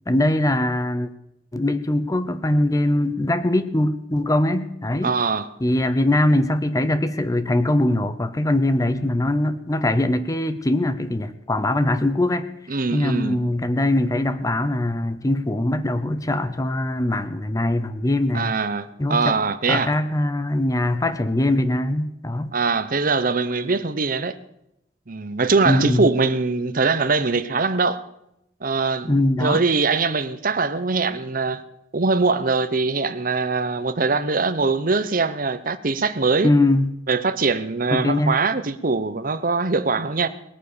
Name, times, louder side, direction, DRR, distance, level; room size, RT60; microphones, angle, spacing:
voice 1, 0.1-1.1 1.5-5.2 5.6-12.5 12.9-18.5 19.0-19.3 19.7-22.5 25.6-26.1 29.1-29.6 36.4-36.9 37.9-38.4, left 1 dB, 20° left, 0.7 m, -22 dB
voice 2, 5.0-5.5 12.7-13.4 18.3-19.9 22.5-24.4 25.1-28.0 28.6-29.1 29.4-31.6 31.9-36.5 37.1-40.3, right 4 dB, 50° right, 0.9 m, -22 dB
19.5 x 9.3 x 6.9 m
head